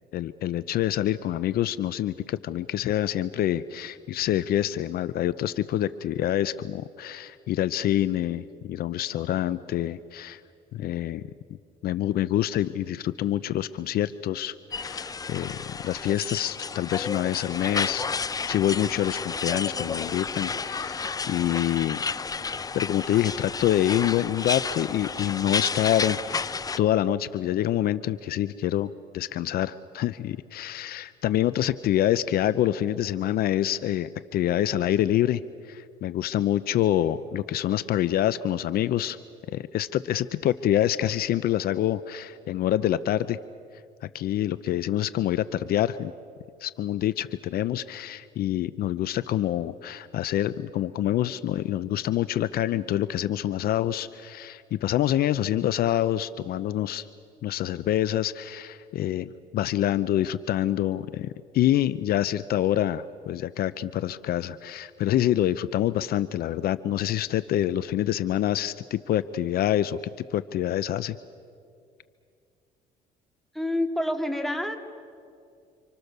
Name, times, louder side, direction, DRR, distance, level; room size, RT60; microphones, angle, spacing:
voice 1, 0.1-10.4 10.7-11.2 11.8-18.0 18.5-22.0 22.7-39.2 39.5-43.4 44.1-46.1 46.6-57.1 57.4-70.0 70.3-71.2, left 12 dB, 65° left, 15 dB, 0.7 m, -26 dB
sound 1, 14.7-26.8, left 5 dB, 20° left, 0.6 m, -31 dB
voice 2, 73.5-74.8, left 1 dB, ahead, 4 dB, 2.3 m, -27 dB
30.0 x 26.0 x 6.8 m, 2.4 s
cardioid pair, 110°, 17 cm